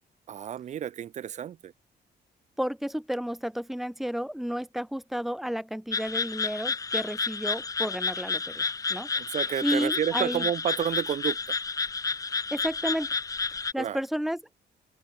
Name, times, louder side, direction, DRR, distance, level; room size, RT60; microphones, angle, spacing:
voice 1, 0.3-1.7 9.2-11.4 13.8-14.0, right 9 dB, 40° right, 0.5 m, -30 dB
voice 2, 2.6-9.4 9.6-10.5 12.5-13.1 13.7-14.5, equal, ahead, 2.2 m, -32 dB
sound 1, 5.9-13.7, left 4 dB, 20° left, 0.9 m, -30 dB
open air
cardioid pair, 170°, 18 cm